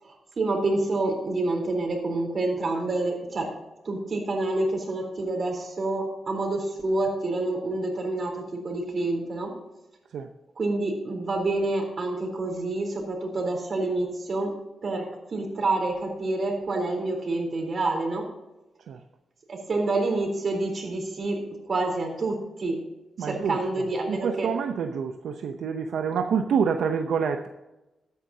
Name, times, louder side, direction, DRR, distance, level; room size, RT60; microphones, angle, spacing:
voice 1, 0.0-3.5 3.8-9.5 10.6-14.5 14.8-18.3 19.5-21.4 21.7-22.8 23.2-24.5, right 2 dB, 45° right, 2 dB, 3.7 m, -28 dB
voice 2, 23.2-23.6 24.1-27.5, right 6 dB, 80° right, 6 dB, 0.7 m, -27 dB
13.5 x 9.4 x 2.8 m, 1.0 s
cardioid pair, 95°, 0 cm